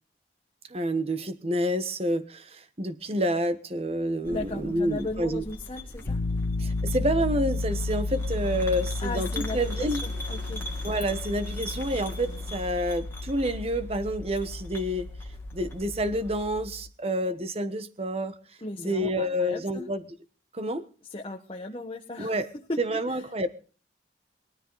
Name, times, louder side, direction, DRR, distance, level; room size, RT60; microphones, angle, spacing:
voice 1, 0.7-5.4 6.6-10.0 10.8-15.1 15.5-18.3 18.8-20.0 20.5-20.9 22.2-22.5 22.8-23.5, equal, 35° right, 10 dB, 1.2 m, -28 dB
sound 1, 4.2-16.6, left 1 dB, 15° left, 2.4 m, -42 dB
voice 2, 4.3-6.2 9.0-10.6 18.6-19.9 21.1-22.3 22.7-23.2, left 2 dB, 30° left, 1 dB, 1.4 m, -36 dB
Piano, 6.1-16.9, left 3 dB, 80° left, 0.7 m, -33 dB
sound 2, 6.6-14.6, right 1 dB, 80° right, 7.8 m, -50 dB
21.5 x 13.5 x 4.1 m, 0.39 s
head